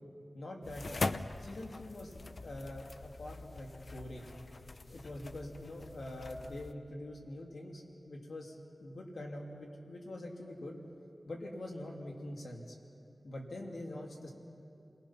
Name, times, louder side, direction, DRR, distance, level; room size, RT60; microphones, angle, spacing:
voice 1, 0.3-4.3 4.9-10.7 11.3-12.8 13.2-14.3, left 1 dB, 85° left, 0 dB, 2.7 m, -44 dB
sound 1, 0.6-6.7, left 3 dB, 55° left, 0.6 m, -42 dB
29.5 x 19.0 x 5.9 m, 2.7 s
wide cardioid pair, 70°, 0 cm